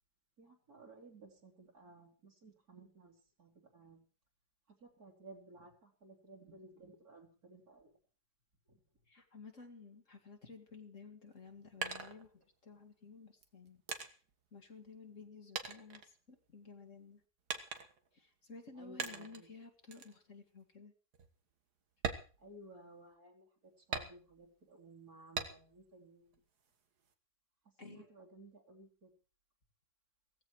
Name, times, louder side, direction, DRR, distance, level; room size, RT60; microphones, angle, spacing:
voice 1, 0.4-4.0 4.8-8.0 8.7-8.8 18.7-19.5 22.4-26.4 27.6-29.1, right 2 dB, 70° right, 1 dB, 4.4 m, -57 dB
voice 2, 9.1-14.2 14.5-17.2 18.1-20.9 27.8-28.1, left 4 dB, 50° left, 4 dB, 2.5 m, -54 dB
sound 1, 11.3-12.8 13.4-15.3 15.6-16.7 17.5-18.1 19.0-19.5 19.9-20.2 20.6-20.7 21.1-21.3 21.9-23.1 23.9-24.6 25.4-25.9 26.3-27.1, right 5 dB, 85° right, 2.1 m, -43 dB
16.5 x 15.5 x 4.7 m, 0.38 s
omnidirectional pair, 1.7 m